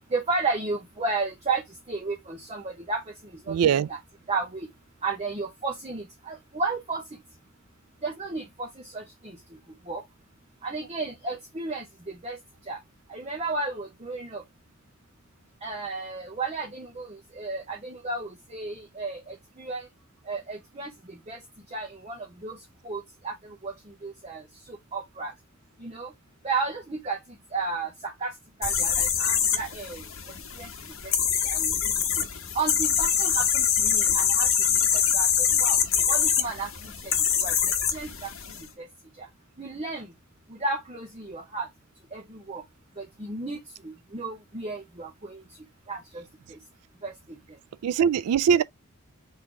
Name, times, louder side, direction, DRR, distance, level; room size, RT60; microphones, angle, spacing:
voice 1, 0.1-1.6 1.9-3.0 3.5-3.6 3.9-4.0 4.3-4.7 5.0-7.0 8.0-8.7 8.9-9.0 9.9-10.0 10.6-11.8 12.2-12.4 12.7-12.8 13.1-14.4 15.6-17.1 17.4-19.9 20.3-20.9 21.3-21.4 21.7-22.6 22.8-23.3 23.6-23.7 24.0-24.4 24.9-25.3 25.8-26.1 26.4-27.2 27.5-28.3 28.6-30.0 30.6-30.7 31.4-31.7 32.5-34.5 35.1-35.3 35.6-35.8 36.1-36.7 37.0-37.1 37.4-37.5 37.9-38.3 38.8-38.9 39.6-40.1 40.6-41.7 42.1-42.6 43.0-43.6 43.8-45.4 45.9-46.0 47.0-47.1, right 3 dB, 30° right, 0.8 m, -32 dB
voice 2, 3.5-3.9 47.8-48.6, right 7 dB, 85° right, 0.3 m, -21 dB
sound 1, 28.6-38.6, left 8 dB, 60° left, 1.2 m, -24 dB
3.7 x 2.8 x 4.7 m
head